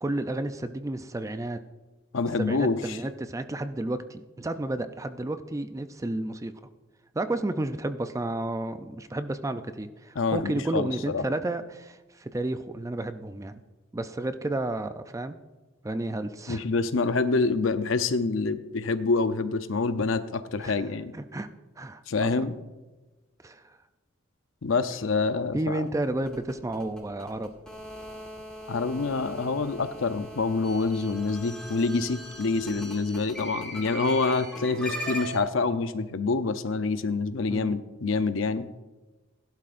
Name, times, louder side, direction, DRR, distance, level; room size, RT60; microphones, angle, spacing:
voice 1, 0.0-1.6 2.4-6.5 7.1-13.6 13.9-15.4 15.8-16.6 20.6-20.8 21.1-21.5 21.8-22.5 23.4-23.6 25.5-27.5 32.5-32.8 37.5-37.8, right 2 dB, 15° right, 10 dB, 0.4 m, -32 dB
voice 2, 2.1-3.0 10.2-11.2 16.5-21.1 22.1-22.6 24.6-25.8 28.7-38.7, left 4 dB, 75° left, 11 dB, 0.7 m, -27 dB
sound 1, 25.8-35.4, equal, 5° left, 2.1 m, -39 dB
16.5 x 11.5 x 2.5 m, 1.2 s
head